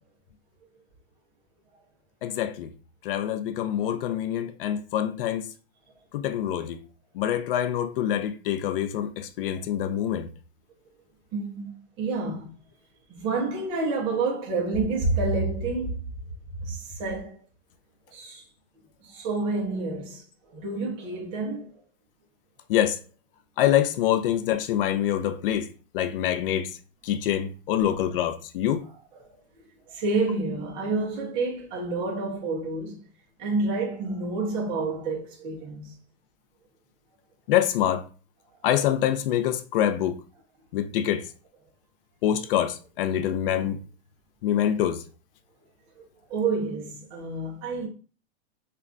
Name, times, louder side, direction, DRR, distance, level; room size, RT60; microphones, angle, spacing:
voice 1, 2.2-2.7 3.0-5.5 6.1-6.8 7.1-10.3 22.7-23.0 23.6-25.7 25.9-26.8 27.0-28.9 37.5-38.1 38.6-40.2 40.7-41.3 42.2-43.8 44.4-45.0, left 11 dB, 60° left, 0.4 m, -25 dB
voice 2, 11.3-12.5 13.1-16.1 16.6-17.4 18.1-18.4 19.0-21.8 27.8-27.9 29.2-29.4 29.9-33.0 33.4-35.9 46.0-46.1 46.3-47.9, right 3 dB, 15° right, 0.4 m, -29 dB
2.3 x 2.2 x 3.7 m
supercardioid pair, 165°, 32 cm